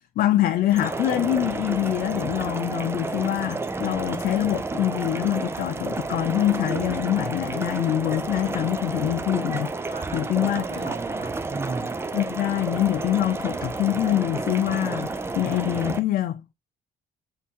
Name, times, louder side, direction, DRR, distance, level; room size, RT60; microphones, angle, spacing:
voice 1, 0.2-10.6 12.1-16.5, left 13 dB, 60° left, 0.4 m, -25 dB
sound 1, 0.7-16.0, right 3 dB, 15° right, 0.4 m, -31 dB
voice 2, 9.9-11.9, right 4 dB, 35° right, 1.2 m, -36 dB
5.4 x 2.8 x 2.8 m
cardioid pair, 110°, 17 cm